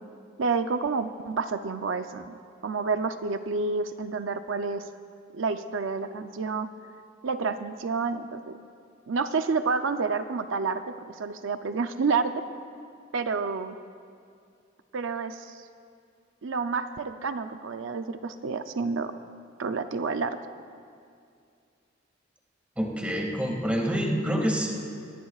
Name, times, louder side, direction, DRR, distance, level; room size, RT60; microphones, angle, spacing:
voice 1, 0.4-2.4 2.6-4.9 5.3-6.7 7.2-8.5 9.1-10.8 11.1-12.3 13.1-13.8 14.9-15.6 16.4-19.1 19.6-20.4, right 4 dB, 80° right, 8 dB, 0.6 m, -29 dB
voice 2, 22.8-24.7, equal, 5° right, -1 dB, 2.1 m, -27 dB
24.0 x 18.5 x 2.4 m, 2.4 s
head